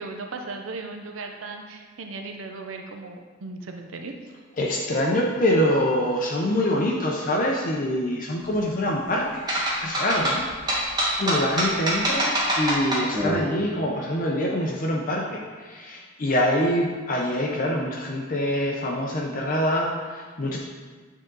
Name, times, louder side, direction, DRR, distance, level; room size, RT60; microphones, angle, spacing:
voice 1, 0.0-4.1, right 3 dB, 85° right, 3 dB, 0.5 m, -37 dB
voice 2, 4.6-10.5 11.1-20.6, left 1 dB, 45° left, -1 dB, 0.6 m, -25 dB
sound 1, 9.5-13.3, equal, 20° right, 1.6 m, -24 dB
9.2 x 3.8 x 3.9 m, 1.5 s
head